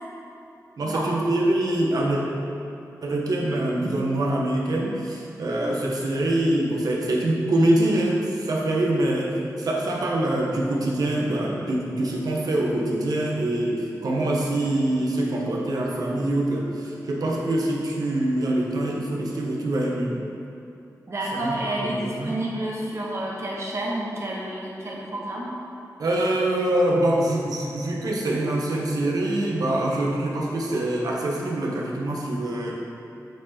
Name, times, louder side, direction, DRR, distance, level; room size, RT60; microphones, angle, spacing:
voice 1, 0.8-2.2 3.0-9.3 9.6-20.2 21.4-21.5 21.8-22.4 26.0-32.7, right 1 dB, 70° right, -2 dB, 1.2 m, -24 dB
voice 2, 21.1-25.5, right 1 dB, 45° right, -4 dB, 1.4 m, -29 dB
8.0 x 4.8 x 4.4 m, 2.8 s
wide cardioid pair, 80°, 7 cm